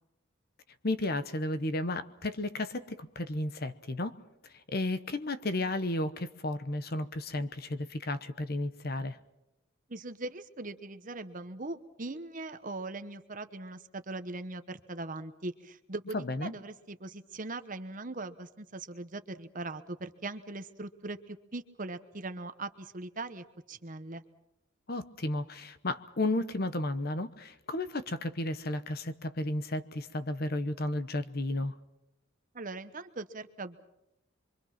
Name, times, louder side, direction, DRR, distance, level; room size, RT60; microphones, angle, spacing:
voice 1, 0.8-4.1 4.7-9.2 16.1-16.5 24.9-31.7, left 1 dB, 50° left, 11 dB, 1.0 m, -33 dB
voice 2, 9.9-24.2 32.5-33.8, right 2 dB, 40° right, 10 dB, 1.1 m, -40 dB
25.0 x 24.5 x 5.9 m, 0.88 s
head